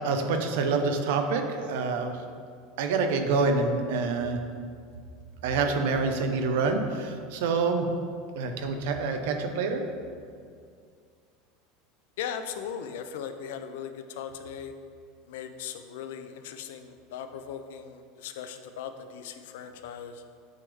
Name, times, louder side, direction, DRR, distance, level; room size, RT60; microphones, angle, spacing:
voice 1, 0.0-2.2 2.8-4.4 5.4-7.9 8.4-9.8, right 4 dB, 75° right, 6 dB, 0.7 m, -27 dB
voice 2, 12.2-14.7 15.3-20.2, left 8 dB, 80° left, 8 dB, 0.4 m, -38 dB
9.0 x 3.5 x 3.5 m, 2.2 s
supercardioid pair, 160°, 0 cm